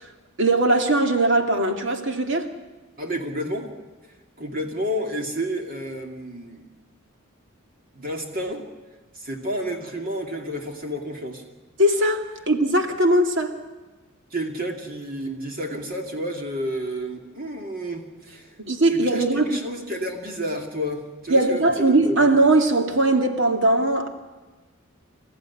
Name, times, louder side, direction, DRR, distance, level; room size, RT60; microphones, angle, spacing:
voice 1, 0.4-2.5 11.8-13.5 18.6-19.6 21.3-24.1, right 1 dB, 60° right, 2.4 m, -20 dB
voice 2, 3.0-3.7 4.0-6.6 7.9-8.7 9.1-11.4 14.3-18.6 18.9-22.2, equal, 40° right, 2.6 m, -31 dB
28.0 x 14.5 x 9.8 m
head